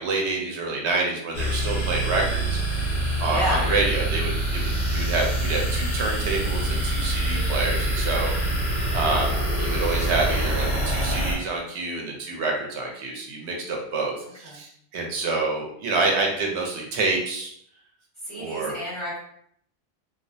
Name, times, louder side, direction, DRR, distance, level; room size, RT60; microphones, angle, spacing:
voice 1, 0.0-2.6 3.2-8.3 8.9-17.5 18.4-18.7, right 3 dB, 90° right, 0 dB, 0.9 m, -27 dB
sound 1, 1.3-11.3, right 1 dB, 75° left, 1.0 m, -25 dB
voice 2, 3.3-3.6 14.4-14.6 18.2-19.2, equal, 15° left, -10 dB, 1.2 m, -30 dB
2.4 x 2.1 x 2.6 m, 0.69 s
omnidirectional pair, 1.1 m